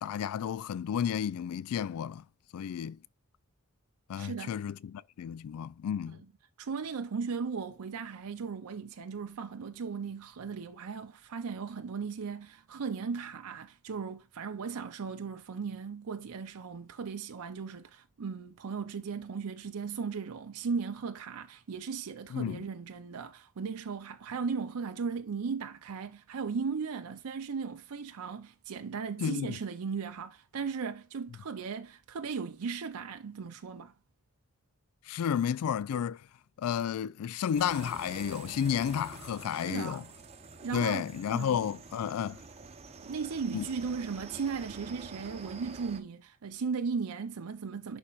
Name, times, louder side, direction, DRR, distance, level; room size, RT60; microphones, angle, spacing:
voice 1, 0.0-2.2 2.5-3.0 4.1-6.2 22.3-22.6 29.2-29.6 35.1-36.2 36.6-40.0 40.7-42.4 43.5-43.7, left 8 dB, 75° left, 0.3 m, -32 dB
voice 2, 4.2-4.6 6.6-33.9 39.5-40.0 40.6-41.1 41.3-41.7 43.0-48.0, right 5 dB, 80° right, 0.5 m, -37 dB
sound 1, 37.6-46.0, right 4 dB, 30° right, 0.8 m, -48 dB
11.0 x 4.2 x 2.4 m
head